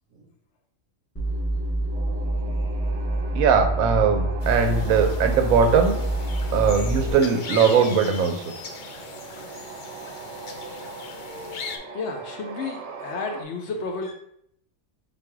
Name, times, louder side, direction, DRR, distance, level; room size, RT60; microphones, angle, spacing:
sound 1, 1.2-7.1, right 1 dB, 15° left, 0.5 m, -26 dB
sound 2, 1.9-13.4, right 5 dB, 60° right, 0.9 m, -40 dB
voice 1, 3.4-6.0 6.5-8.5, right 6 dB, 85° right, 7 dB, 1.0 m, -20 dB
sound 3, 4.4-11.8, left 5 dB, 85° left, 0.4 m, -39 dB
voice 2, 11.9-14.1, left 4 dB, 65° left, 3 dB, 0.8 m, -32 dB
3.8 x 2.5 x 4.7 m, 0.73 s
omnidirectional pair, 1.4 m